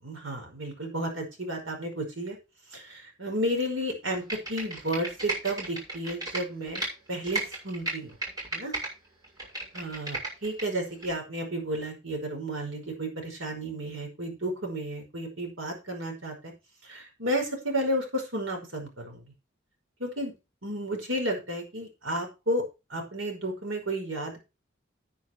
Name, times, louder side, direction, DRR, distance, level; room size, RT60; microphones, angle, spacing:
voice 1, 0.0-2.4 2.7-6.8 7.1-8.2 8.5-8.7 9.7-16.5 16.8-19.2 20.0-20.3 20.6-22.6 22.9-24.4, right 1 dB, 85° right, 3 dB, 5.2 m, -32 dB
Computer keyboard, 4.1-6.9 7.2-8.9 9.2-10.6 11.0-11.1, right 2 dB, 20° right, 6.2 m, -34 dB
9.6 x 9.4 x 4.6 m, 0.28 s
head